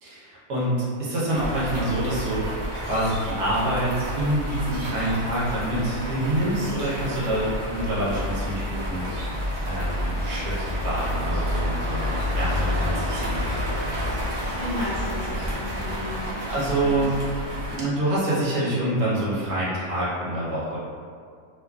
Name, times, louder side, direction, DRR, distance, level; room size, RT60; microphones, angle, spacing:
voice 1, 0.0-12.1 12.4-13.4 16.5-17.2 17.7-20.8, right 1 dB, 80° right, -8 dB, 1.3 m, -26 dB
sound 1, 1.3-17.8, equal, 45° right, 0.6 m, -29 dB
voice 2, 14.5-17.0, left 1 dB, 80° left, -12 dB, 0.4 m, -34 dB
3.0 x 2.3 x 2.3 m, 2.2 s
omnidirectional pair, 1.6 m